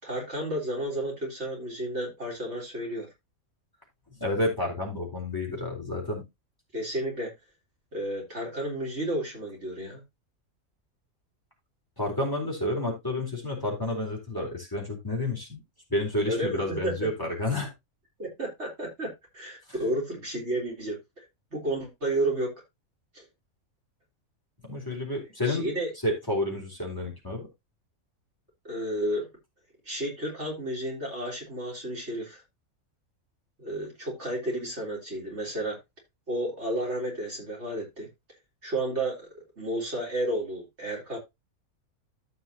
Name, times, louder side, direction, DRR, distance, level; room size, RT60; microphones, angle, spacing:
voice 1, 0.0-3.1 6.7-7.3 7.9-10.0 16.3-16.9 18.2-21.0 21.5-22.5 23.1-23.2 25.5-25.9 28.6-29.3 29.9-32.4 33.6-35.8 36.3-38.1 38.6-41.2, right 1 dB, 50° right, 4.0 m, -32 dB
voice 2, 4.2-6.2 12.0-15.6 15.9-17.7 24.6-25.7 26.0-27.5, left 1 dB, 15° left, 3.9 m, -30 dB
14.5 x 5.6 x 2.9 m
omnidirectional pair, 1.5 m